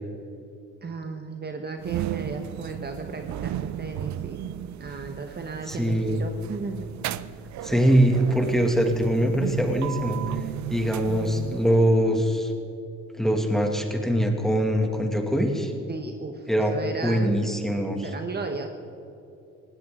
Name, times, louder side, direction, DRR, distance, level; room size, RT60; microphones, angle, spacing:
voice 1, 0.8-3.5 3.8-4.5 4.8-6.9 15.9-17.6 18.0-18.7, right 4 dB, 35° right, 4 dB, 1.3 m, -35 dB
sound 1, 1.8-12.0, right 12 dB, 70° right, 0.6 m, -35 dB
voice 2, 5.7-6.2 7.6-10.2 10.7-12.5 13.2-15.7 16.5-18.1, equal, ahead, 2 dB, 2.4 m, -23 dB
20.5 x 16.5 x 3.9 m, 2.7 s
cardioid pair, 90°, 30 cm